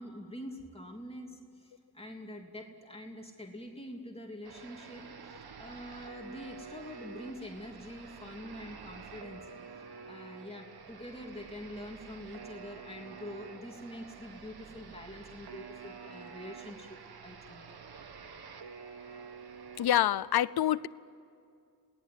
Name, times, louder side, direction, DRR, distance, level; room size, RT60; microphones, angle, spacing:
voice 1, 0.0-5.0 5.6-17.0 17.2-17.6, equal, 15° left, 1 dB, 2.9 m, -45 dB
sound 1, 4.4-20.0, right 5 dB, 80° right, 1.6 m, -48 dB
voice 2, 19.8-20.9, left 11 dB, 80° left, 19 dB, 0.6 m, -26 dB
28.0 x 18.5 x 9.4 m, 2.5 s
cardioid pair, 70°, 38 cm